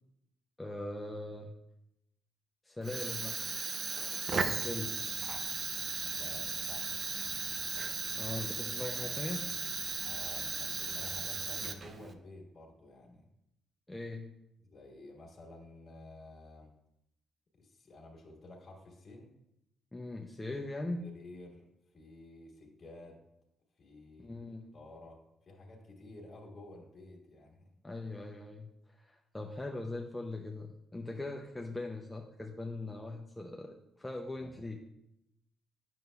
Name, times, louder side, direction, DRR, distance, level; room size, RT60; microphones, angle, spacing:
voice 1, 0.6-1.5 2.6-3.4 4.4-5.0 8.2-9.5 13.9-14.3 19.9-21.1 24.2-24.7 27.8-34.8, left 2 dB, 10° left, 1 dB, 0.5 m, -40 dB
Fire, 2.8-12.1, right 4 dB, 45° right, 0.5 m, -36 dB
voice 2, 6.1-7.0 10.0-13.3 14.6-16.7 17.5-19.3 21.0-21.7 21.9-23.2 23.8-24.4 24.7-27.7 34.4-34.7, left 2 dB, 35° left, -1 dB, 1.6 m, -52 dB
9.1 x 6.5 x 2.3 m, 0.83 s
cardioid pair, 90°, 0 cm